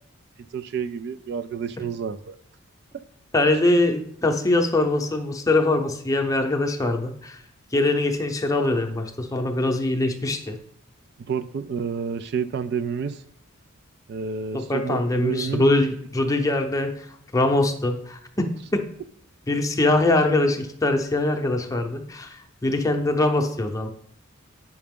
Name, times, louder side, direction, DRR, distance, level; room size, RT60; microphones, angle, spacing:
voice 1, 0.5-2.4 11.3-13.2 14.1-15.7, right 6 dB, 55° right, 11 dB, 0.3 m, -29 dB
voice 2, 3.3-7.4 7.7-10.6 14.5-17.1 17.3-18.4 18.7-18.8 19.5-23.9, left 2 dB, 15° left, 3 dB, 0.7 m, -23 dB
8.3 x 5.8 x 3.6 m, 0.70 s
head